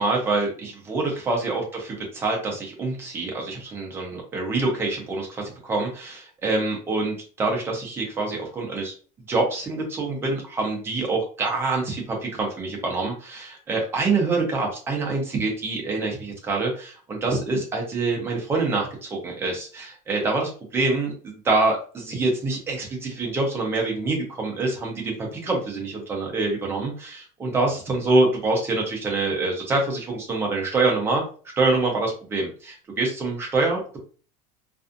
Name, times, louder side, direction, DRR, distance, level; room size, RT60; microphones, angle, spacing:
voice 1, 0.0-8.9 9.3-31.2 31.6-34.0, right 3 dB, 10° right, 0 dB, 0.5 m, -25 dB
2.5 x 2.3 x 2.5 m, 0.39 s
cardioid pair, 180°, 20 cm